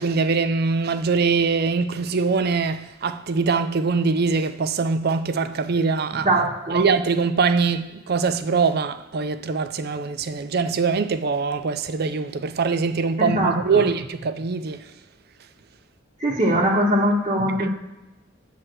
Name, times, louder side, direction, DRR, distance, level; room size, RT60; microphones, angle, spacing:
voice 1, 0.0-6.3 6.7-14.8, right 4 dB, 55° right, 0.5 m, -23 dB
voice 2, 6.2-6.9 13.2-13.9 16.2-17.7, right 1 dB, 35° right, 0.9 m, -21 dB
7.7 x 3.4 x 6.1 m
head